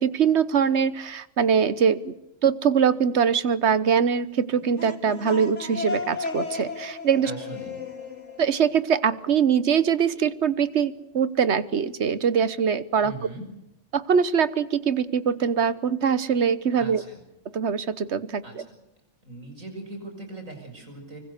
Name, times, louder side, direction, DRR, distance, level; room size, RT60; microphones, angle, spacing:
voice 1, 0.0-2.1 2.4-7.3 8.4-13.1 13.9-17.0 17.5-18.6, right 7 dB, 60° right, 16 dB, 1.3 m, -23 dB
sound 1, 4.6-9.3, left 4 dB, 60° left, 3.7 m, -34 dB
voice 2, 7.2-7.8 13.0-13.5 16.8-17.2 18.4-18.7 19.2-21.2, right 2 dB, 80° right, 5 dB, 6.6 m, -40 dB
25.0 x 24.5 x 6.6 m, 0.88 s
omnidirectional pair, 1.3 m